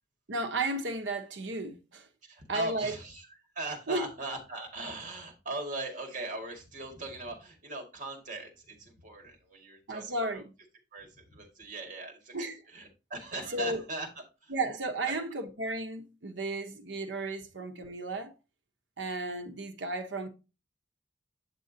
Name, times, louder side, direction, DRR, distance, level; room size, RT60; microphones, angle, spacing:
voice 1, 0.3-2.1 2.5-2.9 3.9-4.1 9.9-10.4 12.3-12.6 13.5-13.8 14.5-18.3 19.0-20.3, right 2 dB, 75° right, 1.0 m, -34 dB
voice 2, 2.2-10.4 10.9-14.1 14.4-14.5 15.0-15.1, right 2 dB, 45° right, 2.1 m, -40 dB
8.3 x 7.1 x 2.8 m
head